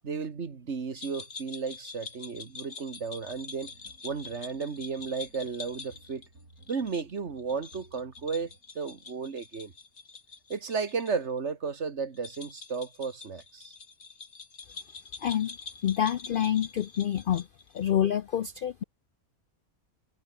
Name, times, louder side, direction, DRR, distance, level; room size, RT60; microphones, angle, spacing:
voice 1, 0.0-3.7 4.0-6.2 6.7-8.5 8.8-9.7 10.5-13.7, right 5 dB, 50° right, 1.9 m, -34 dB
sound 1, 1.0-11.1 11.4-11.5 12.1-17.9, left 4 dB, 55° left, 2.8 m, -46 dB
sound 2, 3.3-9.0, right 2 dB, 75° right, 6.8 m, -58 dB
voice 2, 15.2-15.6 15.8-17.5 17.7-18.8, left 10 dB, 80° left, 0.4 m, -27 dB
omnidirectional pair, 1.5 m